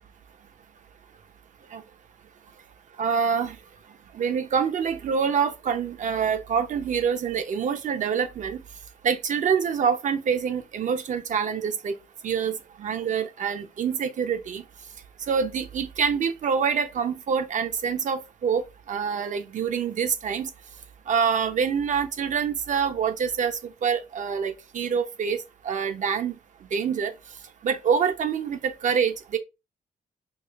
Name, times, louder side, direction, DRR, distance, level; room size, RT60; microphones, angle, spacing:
voice 1, 3.0-3.6 4.1-8.6 9.0-11.9 12.2-14.6 15.3-20.5 21.1-25.4 25.6-26.3 26.7-27.1 27.6-29.4, right 6 dB, 55° right, 0.6 m, -26 dB
4.7 x 2.5 x 2.3 m
cardioid pair, 85°, 15 cm